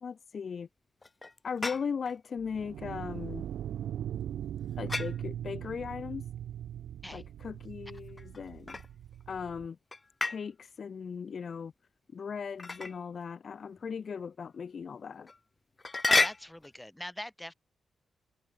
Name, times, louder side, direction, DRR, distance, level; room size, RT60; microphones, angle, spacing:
voice 1, 0.0-0.7 1.4-3.5 4.8-6.2 7.1-8.8 9.3-9.8 10.2-11.7 12.1-15.3, left 6 dB, 55° left, 1.7 m, -38 dB
sound 1, 1.0-2.2 4.9-5.2 8.2-9.2 9.9-10.4 12.6-13.0 13.8-13.9 14.4-14.5 15.3-15.4 15.8-16.7, left 3 dB, 30° left, 0.7 m, -31 dB
sound 2, 2.4-9.7, right 10 dB, 90° right, 0.5 m, -40 dB
voice 2, 16.1-17.5, left 1 dB, 5° left, 2.2 m, -42 dB
cardioid pair, 95°, 0 cm